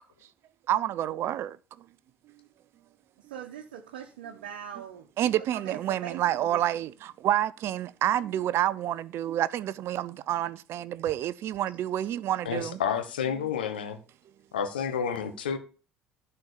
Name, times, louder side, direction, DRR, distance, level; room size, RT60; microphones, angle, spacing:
voice 1, 0.7-1.5 5.2-12.8, right 12 dB, 55° right, 0.6 m, -28 dB
voice 2, 3.3-6.6, right 9 dB, 80° right, 1.2 m, -42 dB
voice 3, 12.4-14.0 14.5-15.6, left 7 dB, 90° left, 1.2 m, -30 dB
11.5 x 4.5 x 7.0 m
hypercardioid pair, 65°, 5 cm